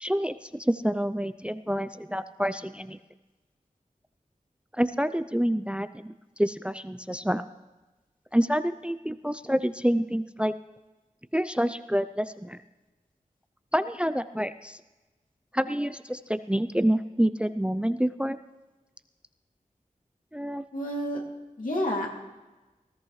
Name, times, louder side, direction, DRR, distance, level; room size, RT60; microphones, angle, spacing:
voice 1, 0.0-3.0 4.8-6.1 6.4-7.4 8.3-10.5 11.3-12.6 13.7-14.8 15.5-18.4 20.3-20.6, equal, 10° right, 12 dB, 0.4 m, -27 dB
voice 2, 20.7-21.2 21.6-22.1, equal, 75° left, -1 dB, 2.5 m, -29 dB
19.5 x 14.0 x 3.2 m, 1.2 s
wide cardioid pair, 45°, 14 cm